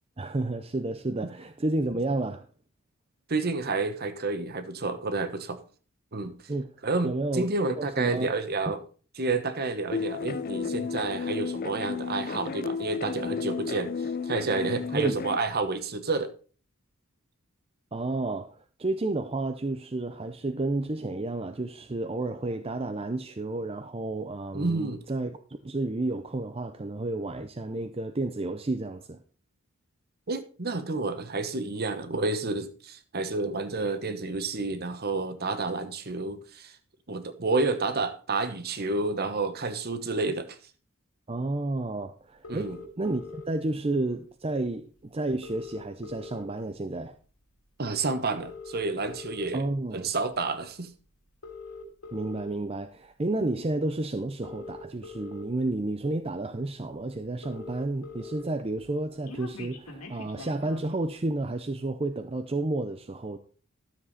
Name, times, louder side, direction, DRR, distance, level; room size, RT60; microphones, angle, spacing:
voice 1, 0.2-2.5 6.5-6.7 7.0-7.5 7.8-8.3 8.7-8.8 14.9-15.2 17.9-29.2 41.3-47.2 49.5-50.1 52.1-63.4, right 2 dB, 25° right, 0.6 m, -31 dB
voice 2, 3.3-5.6 6.1-6.4 6.8-8.8 9.2-16.3 24.5-25.0 30.3-36.7 37.1-40.6 42.5-42.8 47.8-49.6 49.9-50.9, right 3 dB, 45° right, 1.1 m, -30 dB
sound 1, 9.9-15.4, left 5 dB, 40° left, 0.4 m, -33 dB
sound 2, 42.4-43.5 44.6-44.7 45.0-45.1 45.3-46.7 47.2-47.4 48.3-49.4 50.1-50.4 51.3-52.4 53.7-53.8 54.3-55.4 56.1-56.2 56.5-56.6 56.8-56.9 57.1-58.4 58.8-60.9, left 4 dB, 85° left, 2.4 m, -43 dB
12.5 x 7.2 x 4.2 m
head